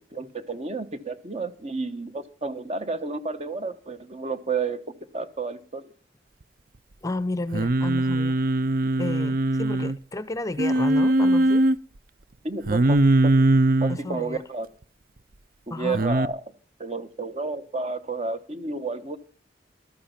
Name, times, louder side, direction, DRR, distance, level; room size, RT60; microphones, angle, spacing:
voice 1, 0.0-4.8 5.1-5.8 12.4-13.3 13.8-14.7 15.7-16.5 16.8-19.2, right 3 dB, 35° right, 1.2 m, -31 dB
voice 2, 7.0-8.4 9.0-11.7 13.9-14.4 15.7-16.0, left 2 dB, 20° left, 0.7 m, -32 dB
Singing, 7.5-10.0 10.6-11.8 12.7-14.0 15.9-16.3, right 2 dB, 55° right, 0.6 m, -21 dB
13.5 x 13.0 x 5.7 m
head